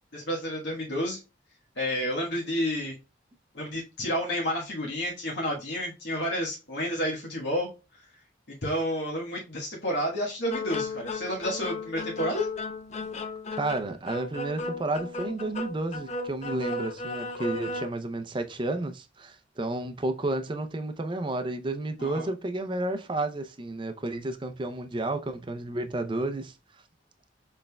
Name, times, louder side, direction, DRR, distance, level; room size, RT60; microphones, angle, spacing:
voice 1, 0.1-1.2 1.8-3.0 3.5-7.7 8.5-12.5 22.0-22.3, equal, 65° left, 1.3 m, -30 dB
sound 1, 10.5-17.9, left 3 dB, 40° left, 0.6 m, -35 dB
voice 2, 13.5-26.5, right 2 dB, 25° right, 0.5 m, -31 dB
6.3 x 3.3 x 2.2 m
head